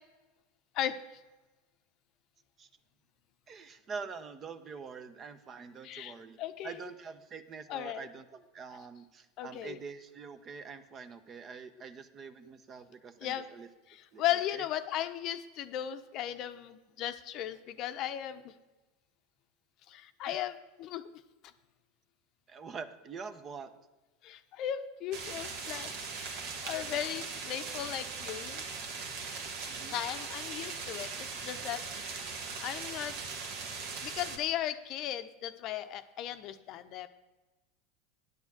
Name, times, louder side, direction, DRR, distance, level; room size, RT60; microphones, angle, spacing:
voice 1, 3.5-6.4 6.6-13.7 14.1-14.7 20.3-20.4 22.5-23.7 29.7-30.0, right 5 dB, 35° right, 10 dB, 0.9 m, -45 dB
voice 2, 5.8-6.8 7.7-8.1 9.4-9.8 13.2-13.5 13.9-18.5 19.9-21.0 24.2-28.6 29.9-32.2 32.6-33.1 34.0-37.1, left 11 dB, 50° left, 10 dB, 0.7 m, -37 dB
sound 1, 25.1-34.4, right 4 dB, 65° right, 1.4 m, -40 dB
9.5 x 5.5 x 7.3 m, 1.2 s
hypercardioid pair, 85°, 0 cm